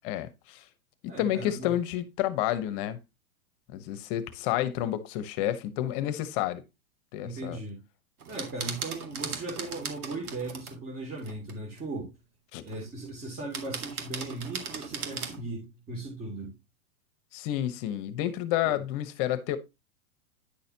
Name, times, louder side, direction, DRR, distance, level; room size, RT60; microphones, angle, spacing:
voice 1, 0.0-0.6 1.2-3.0 3.7-6.6 7.1-7.6 12.5-12.6 17.3-19.6, left 12 dB, 40° left, 1.1 m, -30 dB
voice 2, 1.0-1.7 7.2-7.8 8.3-12.1 12.6-16.5 18.6-18.8, right 2 dB, 20° right, 2.8 m, -38 dB
sound 1, 8.2-10.7 11.2-11.8 12.7-13.1 13.5-15.5, right 6 dB, 85° right, 2.1 m, -38 dB
10.0 x 6.4 x 2.9 m
hypercardioid pair, 140°, 43 cm